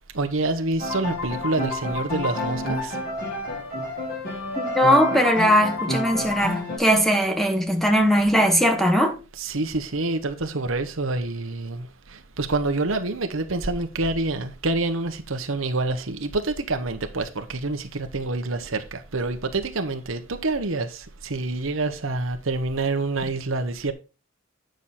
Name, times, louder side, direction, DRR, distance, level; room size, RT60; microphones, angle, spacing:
voice 1, 0.1-3.0 9.4-23.9, right 2 dB, 80° right, 1.1 m, -27 dB
sound 1, 0.8-6.8, left 1 dB, 50° left, 5.2 m, -29 dB
voice 2, 4.6-9.1, equal, ahead, 1.4 m, -20 dB
9.2 x 6.3 x 4.3 m
head